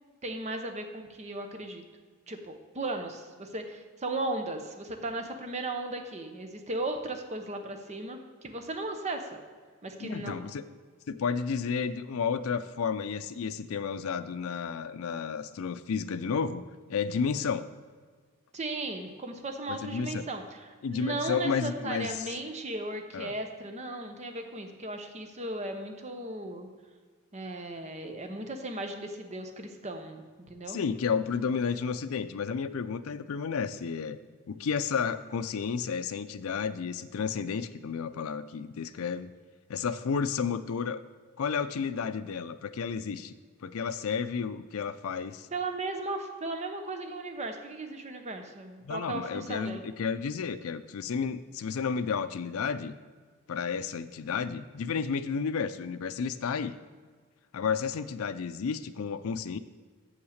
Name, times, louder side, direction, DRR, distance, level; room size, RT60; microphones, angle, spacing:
voice 1, 0.2-1.8 2.3-9.4 9.8-10.4 18.5-26.7 27.3-30.2 30.5-30.8 45.5-49.8, right 2 dB, 30° right, 5 dB, 0.8 m, -36 dB
voice 2, 10.0-10.6 11.1-16.6 16.9-17.7 19.7-20.2 20.8-22.3 23.1-23.3 30.7-34.2 34.5-39.3 39.7-41.0 41.4-43.3 43.6-45.5 48.8-52.9 53.5-56.7 57.5-59.6, left 6 dB, 75° left, 11 dB, 0.4 m, -32 dB
7.2 x 5.8 x 6.4 m, 1.5 s
head